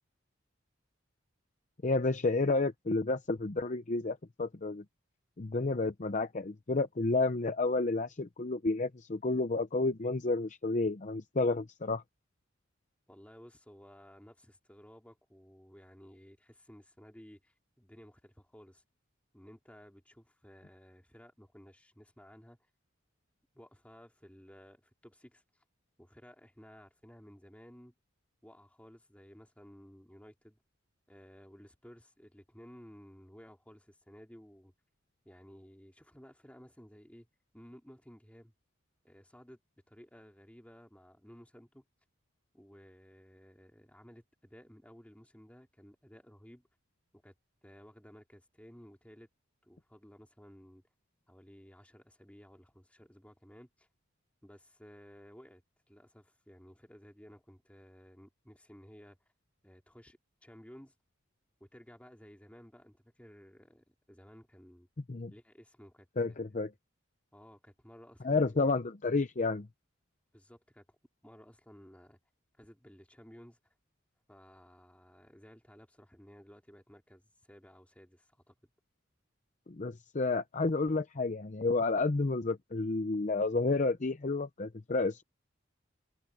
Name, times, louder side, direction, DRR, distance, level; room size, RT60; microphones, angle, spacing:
voice 1, 1.8-4.8 5.4-12.0 65.1-65.3 66.2-66.7 68.2-69.7 79.7-85.2, left 3 dB, 35° left, 0.7 m, -31 dB
voice 2, 13.1-18.8 19.3-22.7 23.5-25.6 26.0-27.9 28.4-30.6 31.1-34.7 35.2-37.3 37.5-38.5 39.0-39.6 39.9-41.8 42.5-46.7 47.1-47.3 47.6-49.3 49.6-50.8 51.3-53.9 54.4-55.6 55.9-59.2 59.6-60.9 61.6-64.9 65.3-66.1 67.3-68.6 70.3-70.9 71.2-72.2 72.6-73.7 74.3-78.5, equal, 5° left, 3.8 m, -56 dB
head